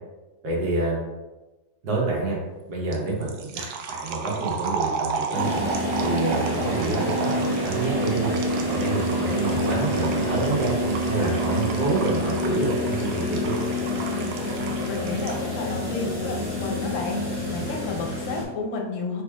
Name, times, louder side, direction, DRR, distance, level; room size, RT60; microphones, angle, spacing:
voice 1, 0.4-1.0 1.8-2.4 2.7-5.5 6.0-10.8 11.1-13.6, right 2 dB, 70° right, -3 dB, 1.7 m, -28 dB
sound 1, 2.9-15.5, right 5 dB, 90° right, 1.3 m, -33 dB
sound 2, 5.3-18.4, equal, 20° right, 0.8 m, -27 dB
voice 2, 14.9-19.2, left 4 dB, 55° left, 1 dB, 0.9 m, -31 dB
3.9 x 3.4 x 3.4 m, 1.1 s
omnidirectional pair, 2.0 m